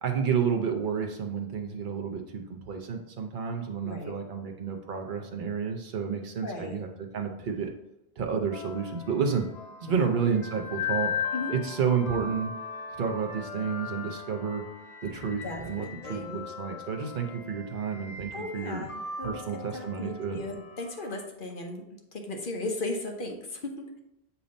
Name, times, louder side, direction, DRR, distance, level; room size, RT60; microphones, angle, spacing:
voice 1, 0.0-6.9 7.1-7.7 8.2-9.4 9.8-11.1 11.5-12.5 13.0-14.6 15.0-18.9 19.2-20.4, right 6 dB, 50° right, 3 dB, 0.9 m, -30 dB
voice 2, 3.8-4.1 6.4-6.8 9.9-10.2 11.3-11.5 15.4-16.4 18.3-19.4 19.7-21.8 22.1-24.0, left 2 dB, 55° left, 2 dB, 0.9 m, -36 dB
sound 1, 8.5-21.2, left 6 dB, 80° left, 1.0 m, -38 dB
7.0 x 2.8 x 5.1 m, 0.87 s
omnidirectional pair, 1.2 m